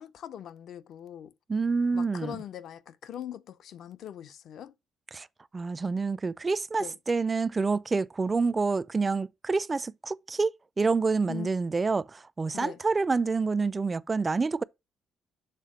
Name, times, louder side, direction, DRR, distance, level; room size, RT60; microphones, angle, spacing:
voice 1, 0.0-1.3 1.9-4.7 6.8-7.0 11.3-11.5 12.5-12.8, left 11 dB, 70° left, 0.5 m, -41 dB
voice 2, 1.5-2.4 5.1-5.3 5.5-10.5 10.8-14.6, right 4 dB, 30° right, 0.3 m, -27 dB
6.7 x 3.6 x 6.2 m
cardioid pair, 90°, 0 cm